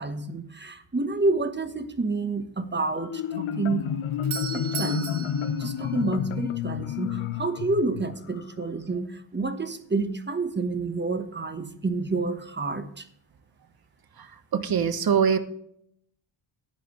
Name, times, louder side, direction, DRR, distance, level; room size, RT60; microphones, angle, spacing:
voice 1, 0.0-3.8 4.5-13.1, right 3 dB, 20° right, 9 dB, 1.1 m, -29 dB
Marimba xylophone, 3.0-8.5, left 9 dB, 80° left, 0.8 m, -30 dB
Doorbell, 3.9-6.7, right 7 dB, 85° right, 1.3 m, -37 dB
voice 2, 14.5-15.4, right 7 dB, 50° right, 10 dB, 1.2 m, -22 dB
11.5 x 9.2 x 3.1 m, 0.70 s
cardioid pair, 85°, 48 cm